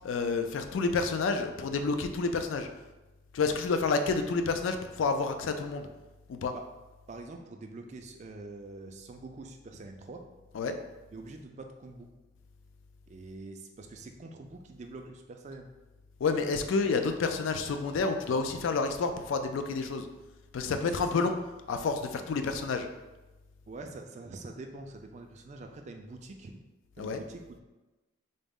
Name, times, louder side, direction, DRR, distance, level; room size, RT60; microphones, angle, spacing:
voice 1, 0.0-2.7 3.3-5.9 6.3-6.5 10.5-10.8 16.2-20.1 20.5-21.4 21.7-22.9 27.0-27.2, left 4 dB, 75° left, 7 dB, 0.3 m, -29 dB
voice 2, 7.1-10.2 11.1-12.1 13.1-15.7 23.7-26.5 27.0-27.4, right 2 dB, 35° right, 4 dB, 0.3 m, -45 dB
3.9 x 2.0 x 3.6 m, 1.1 s
head